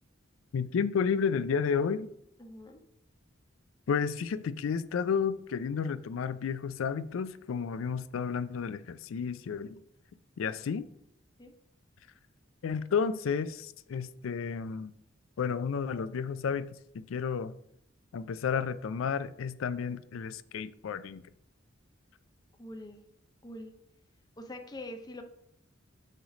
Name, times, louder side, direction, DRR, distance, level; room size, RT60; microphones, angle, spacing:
voice 1, 0.5-2.1 3.9-9.8 10.4-10.9 12.6-14.9 15.4-17.5 18.1-21.3, left 6 dB, 80° left, 0.4 m, -32 dB
voice 2, 2.4-2.8 11.4-11.5 22.6-23.0 23.4-23.7 24.4-25.2, left 1 dB, 20° left, 0.6 m, -44 dB
6.6 x 3.1 x 5.0 m
head